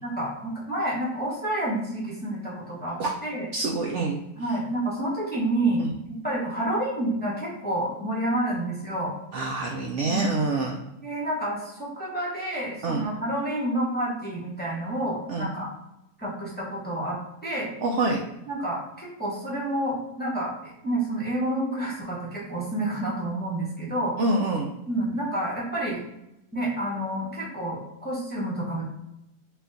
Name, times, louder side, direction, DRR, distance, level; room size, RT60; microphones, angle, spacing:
voice 1, 0.0-3.5 4.3-9.1 10.0-10.4 11.0-15.7 16.2-17.7 18.5-24.1 24.9-26.0 26.5-28.9, right 1 dB, 10° left, -6 dB, 0.8 m, -29 dB
voice 2, 3.5-4.2 9.3-10.8 12.8-13.0 15.3-15.5 17.8-18.2 24.2-24.7, right 3 dB, 65° right, -1 dB, 0.7 m, -26 dB
4.1 x 2.4 x 3.9 m, 0.87 s
omnidirectional pair, 1.6 m